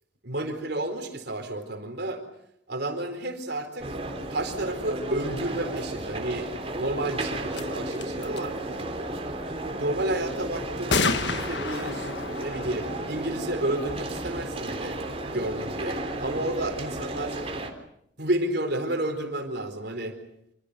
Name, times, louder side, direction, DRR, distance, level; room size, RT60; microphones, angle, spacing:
voice 1, 0.2-2.2 2.7-3.9 4.3-6.5 6.8-8.6 9.4-9.5 9.8-15.0 15.3-17.4 18.2-20.2, right 1 dB, 55° right, 5 dB, 4.2 m, -31 dB
sound 1, 3.8-17.7, right 1 dB, 30° right, 3.5 m, -33 dB
sound 2, 7.2-7.3 7.5-7.6 7.9-8.5 10.9-14.3, left 4 dB, 65° left, 1.4 m, -31 dB
27.5 x 27.0 x 6.8 m, 0.72 s
head